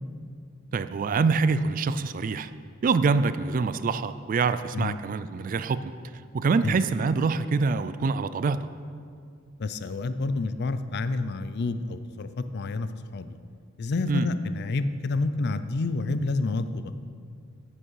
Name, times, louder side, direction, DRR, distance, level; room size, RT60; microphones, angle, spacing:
voice 1, 0.7-2.5 2.8-5.9 6.3-8.6 14.1-14.3, right 4 dB, 40° right, 13 dB, 0.3 m, -25 dB
voice 2, 9.6-13.4 13.8-16.9, left 3 dB, 55° left, 12 dB, 0.5 m, -29 dB
9.8 x 8.8 x 4.7 m, 2.2 s
head